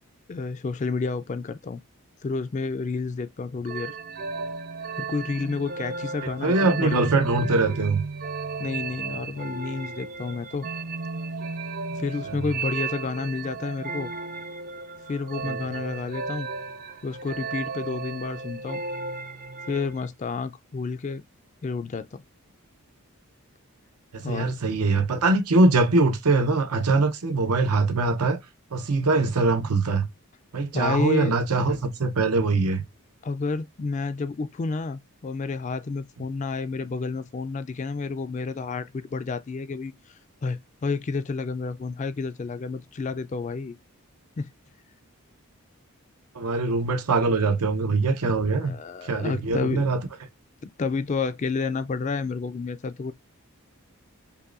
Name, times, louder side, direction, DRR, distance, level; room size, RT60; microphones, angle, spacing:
voice 1, 0.3-1.8 2.2-4.0 5.0-7.2 8.6-10.7 12.0-14.1 15.1-16.5 17.0-18.8 19.7-21.2 21.6-22.2 24.2-24.5 30.7-31.7 33.2-39.9 40.4-43.8 44.4-44.5 48.6-49.9 50.6-53.1, left 4 dB, 35° left, 0.3 m, -30 dB
sound 1, 3.7-20.1, right 4 dB, 40° right, 0.4 m, -34 dB
voice 2, 6.4-8.0 12.3-12.4 15.4-15.6 24.1-28.4 28.7-30.0 30.5-32.8 46.3-48.7 49.0-50.0, right 3 dB, 90° right, 0.7 m, -23 dB
5.4 x 2.2 x 2.4 m
head